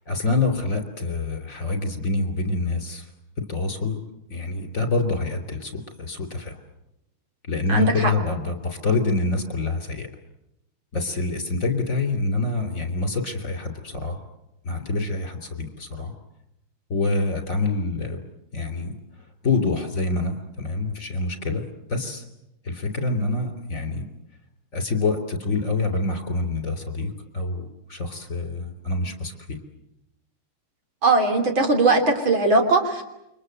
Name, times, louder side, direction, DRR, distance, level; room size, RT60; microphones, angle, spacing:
voice 1, 0.0-3.1 3.4-4.0 4.3-6.6 7.4-10.1 10.9-14.2 14.6-16.1 16.9-18.2 18.5-18.9 19.4-21.6 21.9-22.2 22.6-24.1 24.7-29.6, left 3 dB, 35° left, 6 dB, 3.8 m, -26 dB
voice 2, 7.7-8.1 31.0-33.0, right 3 dB, 65° right, 4 dB, 4.1 m, -19 dB
29.0 x 25.0 x 7.9 m, 0.86 s
omnidirectional pair, 2.4 m